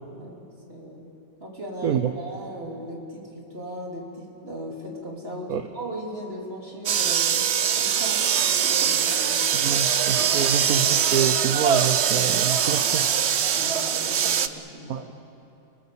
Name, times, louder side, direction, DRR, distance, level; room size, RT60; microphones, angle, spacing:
voice 1, 0.1-1.1 1.4-9.7 10.1-10.5 13.5-15.0, equal, 30° right, -2 dB, 3.7 m, -38 dB
voice 2, 1.8-2.2 5.5-5.6 9.5-13.1 14.9-15.1, right 8 dB, 60° right, 7 dB, 1.1 m, -27 dB
sound 1, 6.9-14.5, right 8 dB, 75° right, 0.6 m, -22 dB
30.0 x 19.0 x 7.1 m, 2.8 s
omnidirectional pair, 2.1 m